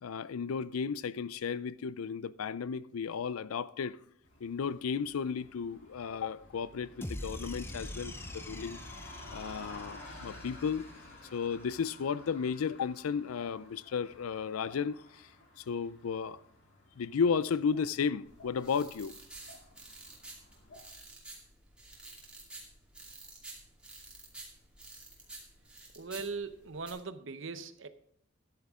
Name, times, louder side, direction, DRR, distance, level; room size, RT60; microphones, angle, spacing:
voice 1, 0.0-4.0 4.4-8.8 9.3-10.9 11.3-15.3 15.6-16.4 17.0-19.1, left 6 dB, 90° left, 0.4 m, -34 dB
sound 1, 4.2-20.8, left 2 dB, 55° left, 2.6 m, -53 dB
sound 2, 7.0-11.3, left 1 dB, 10° left, 0.6 m, -44 dB
sound 3, 18.2-26.9, right 2 dB, 5° right, 2.5 m, -51 dB
voice 2, 26.0-27.9, right 4 dB, 60° right, 0.8 m, -40 dB
13.0 x 10.5 x 3.6 m
head